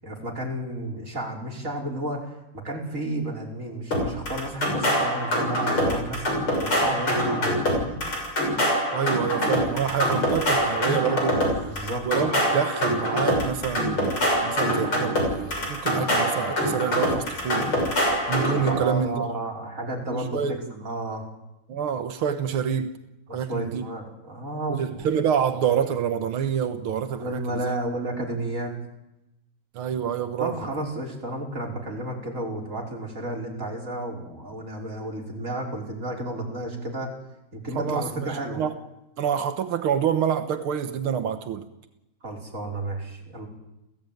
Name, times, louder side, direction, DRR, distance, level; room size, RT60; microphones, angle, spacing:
voice 1, 0.0-6.2 6.6-8.0 11.6-12.1 18.7-21.2 23.3-25.1 27.2-28.7 30.4-37.1 37.5-38.6 42.2-43.5, right 1 dB, 35° right, 0 dB, 5.6 m, -32 dB
sound 1, 3.9-18.8, equal, 80° left, 7.2 m, -24 dB
voice 2, 8.9-11.4 12.1-17.7 18.3-19.3 20.1-20.6 21.7-22.9 23.3-23.8 24.7-27.7 29.7-30.6 37.7-38.8 39.2-41.7, right 8 dB, 90° right, 8 dB, 2.1 m, -27 dB
29.5 x 16.5 x 9.3 m, 0.92 s
omnidirectional pair, 2.3 m